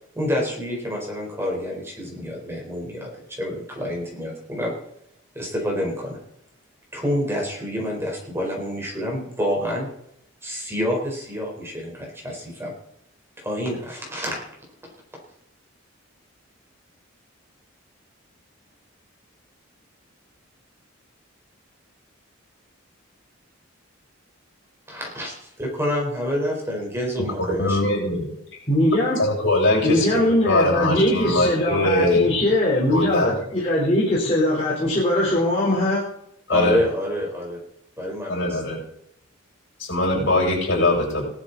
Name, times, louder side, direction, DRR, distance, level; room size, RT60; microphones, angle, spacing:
voice 1, 0.1-4.7 5.3-6.2 6.9-9.9 10.4-12.7 13.4-14.4 24.9-27.9 36.5-37.6 38.0-38.6, equal, 10° right, -1 dB, 4.3 m, -28 dB
voice 2, 27.6-28.3 29.2-32.3 32.9-33.3 36.5-36.8 38.3-38.8 39.8-41.3, left 2 dB, 65° left, -2 dB, 7.5 m, -21 dB
voice 3, 28.7-29.2 29.8-36.0, left 1 dB, 30° left, -5 dB, 4.0 m, -21 dB
18.0 x 12.5 x 4.1 m, 0.74 s
head